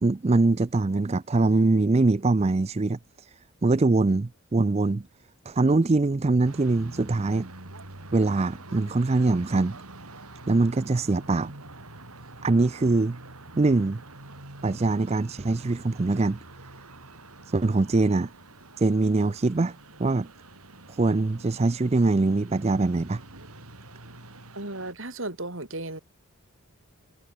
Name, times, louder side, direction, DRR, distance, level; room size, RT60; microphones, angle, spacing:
voice 1, 0.0-5.0 5.5-7.5 8.1-9.8 10.5-11.5 12.4-13.2 13.6-14.0 14.6-16.4 17.5-18.3 18.8-20.3 20.9-23.2, right 3 dB, 30° right, 0.4 m, -23 dB
sound 1, 6.4-24.9, right 2 dB, 85° right, 4.9 m, -46 dB
voice 2, 24.5-26.0, right 2 dB, 60° right, 4.3 m, -35 dB
head